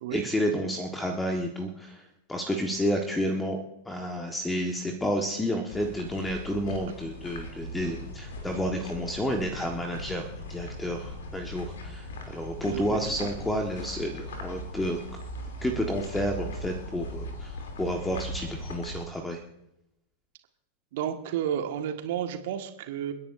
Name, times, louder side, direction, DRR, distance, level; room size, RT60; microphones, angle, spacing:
voice 1, 0.1-3.6 3.8-15.0 15.6-19.4, equal, 10° left, 3 dB, 1.5 m, -30 dB
sound 1, 5.7-19.0, left 1 dB, 60° left, 3.0 m, -39 dB
voice 2, 12.6-13.3 20.9-23.1, right 9 dB, 55° right, 6 dB, 1.7 m, -32 dB
29.5 x 10.5 x 2.7 m, 0.87 s
figure-of-eight pair, 90°, 0 cm